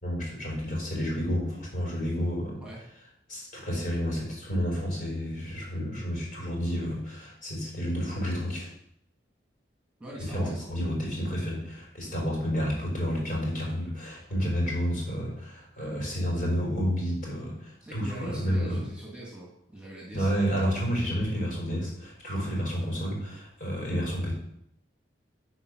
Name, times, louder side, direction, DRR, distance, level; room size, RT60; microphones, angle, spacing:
voice 1, 0.0-2.6 3.3-8.7 10.2-18.8 20.1-24.3, equal, 50° left, -2 dB, 4.8 m, -30 dB
voice 2, 10.0-10.7 17.8-20.5, right 1 dB, 5° right, -4 dB, 2.5 m, -41 dB
14.0 x 4.7 x 6.4 m, 0.75 s
head